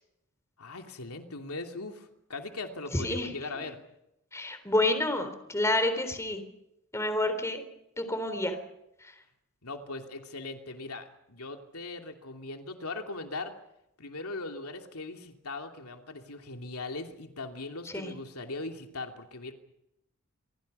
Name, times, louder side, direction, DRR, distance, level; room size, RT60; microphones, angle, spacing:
voice 1, 0.6-3.8 9.6-13.5 14.0-19.5, left 3 dB, 80° left, 4 dB, 2.9 m, -39 dB
voice 2, 2.9-3.3 4.3-6.4 6.9-7.6 8.0-8.6 17.9-18.1, left 1 dB, 15° left, 9 dB, 3.7 m, -28 dB
27.5 x 23.5 x 5.6 m, 0.83 s
head